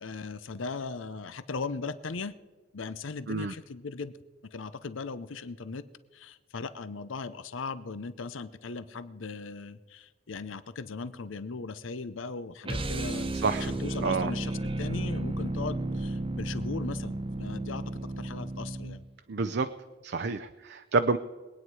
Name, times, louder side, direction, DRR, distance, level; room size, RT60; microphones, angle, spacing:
voice 1, 0.0-2.3 2.7-4.1 4.4-5.8 6.1-13.3 13.6-19.0, left 4 dB, 80° left, 14 dB, 0.7 m, -38 dB
sound 1, 12.6-19.1, right 1 dB, 25° right, 1.0 m, -33 dB
voice 2, 19.3-19.7 20.0-21.2, right 4 dB, 60° right, 10 dB, 0.5 m, -28 dB
22.5 x 9.4 x 4.8 m, 1.4 s
head